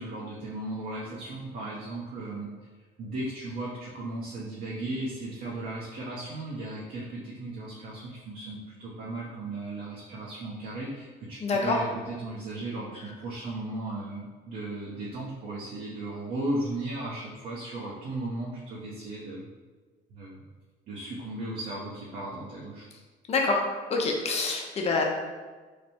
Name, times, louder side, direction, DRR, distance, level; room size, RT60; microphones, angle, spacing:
voice 1, 0.0-2.5 3.0-19.5 20.1-20.4 20.9-22.9, right 2 dB, 60° right, -6 dB, 0.8 m, -36 dB
voice 2, 11.4-11.8 23.3-23.6 23.9-25.0, left 3 dB, 40° left, 0 dB, 0.7 m, -26 dB
3.3 x 2.2 x 4.3 m, 1.4 s
cardioid pair, 110°, 17 cm